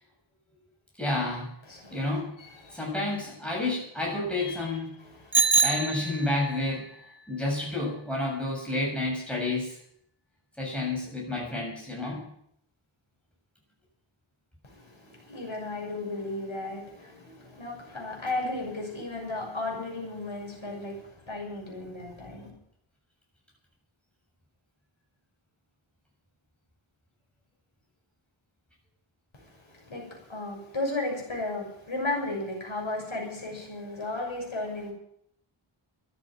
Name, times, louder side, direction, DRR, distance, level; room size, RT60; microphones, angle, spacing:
voice 1, 1.0-1.5 1.9-2.4 2.7-5.0 5.6-9.8 10.6-12.3, left 2 dB, ahead, -3 dB, 7.4 m, -30 dB
voice 2, 1.7-2.1 2.4-3.0 4.4-5.7 14.6-22.5 29.3-34.9, left 2 dB, 65° left, 0 dB, 6.3 m, -35 dB
Bicycle bell, 5.3-6.6, right 4 dB, 25° right, 1.3 m, -24 dB
13.0 x 9.9 x 9.3 m, 0.72 s
wide cardioid pair, 55°, 50 cm